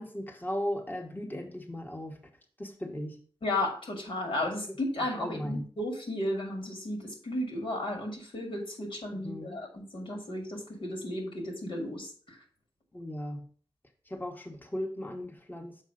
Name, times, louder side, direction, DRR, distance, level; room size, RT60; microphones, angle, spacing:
voice 1, 0.0-2.2 2.6-3.2 4.7-4.8 5.2-5.6 9.1-9.6 12.9-13.5 14.1-15.8, left 1 dB, 20° left, 1 dB, 1.3 m, -37 dB
voice 2, 3.4-12.4, left 1 dB, 75° left, 1 dB, 2.2 m, -34 dB
6.7 x 4.7 x 5.1 m, 0.44 s
cardioid pair, 50°, 9 cm